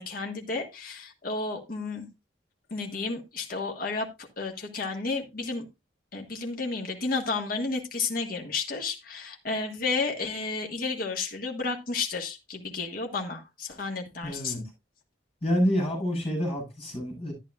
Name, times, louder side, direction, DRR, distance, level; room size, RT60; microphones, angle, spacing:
voice 1, 0.0-2.1 2.7-5.6 6.1-14.6, left 3 dB, 50° left, 1.7 m, -32 dB
voice 2, 14.2-14.6 15.4-17.3, equal, 30° left, 7.8 m, -27 dB
11.5 x 10.5 x 2.4 m
head